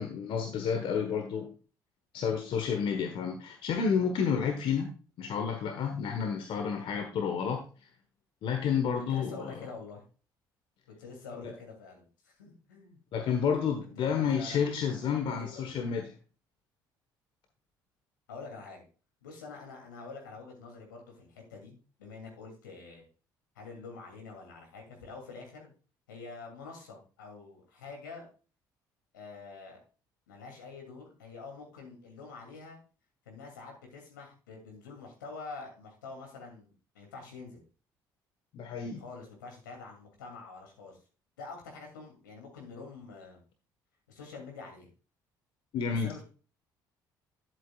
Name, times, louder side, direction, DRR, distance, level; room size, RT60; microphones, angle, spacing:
voice 1, 0.0-1.5 2.1-4.9 5.2-7.9 8.4-9.7 13.1-16.1 38.5-39.0 45.7-46.1, left 6 dB, 55° left, 6 dB, 1.3 m, -30 dB
voice 2, 9.0-10.0 10.9-13.0 14.0-15.9 18.3-18.9 19.2-23.0 23.5-25.7 26.1-28.3 29.1-29.8 30.3-32.8 33.3-37.6 39.0-41.0 41.4-43.4 44.1-44.9 45.8-46.2, left 4 dB, 85° left, 1 dB, 2.7 m, -46 dB
11.0 x 7.9 x 2.4 m, 0.36 s
hypercardioid pair, 55°, 10 cm